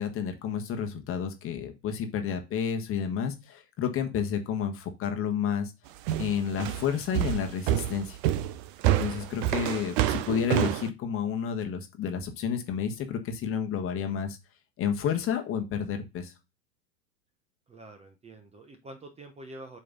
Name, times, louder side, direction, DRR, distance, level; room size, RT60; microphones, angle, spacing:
voice 1, 0.0-5.7 6.2-8.2 9.0-14.4 14.8-16.3, left 7 dB, 30° left, 1.3 m, -30 dB
sound 1, 6.1-10.9, right 13 dB, 35° right, 0.5 m, -27 dB
voice 2, 17.7-19.8, right 1 dB, 15° right, 1.0 m, -46 dB
7.8 x 3.4 x 3.9 m
hypercardioid pair, 105°, 47 cm